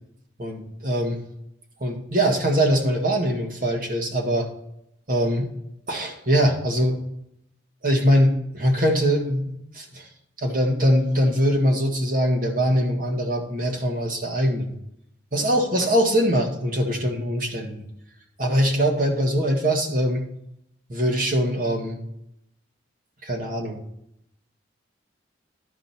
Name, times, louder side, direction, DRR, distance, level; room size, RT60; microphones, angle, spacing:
voice 1, 0.4-1.2 1.8-4.5 5.1-5.5 5.9-7.0 7.8-10.1 10.4-14.7 15.3-17.8 18.4-20.3 20.9-22.0 23.2-23.8, equal, 50° right, 2 dB, 1.6 m, -22 dB
11.5 x 4.9 x 4.3 m, 0.77 s
head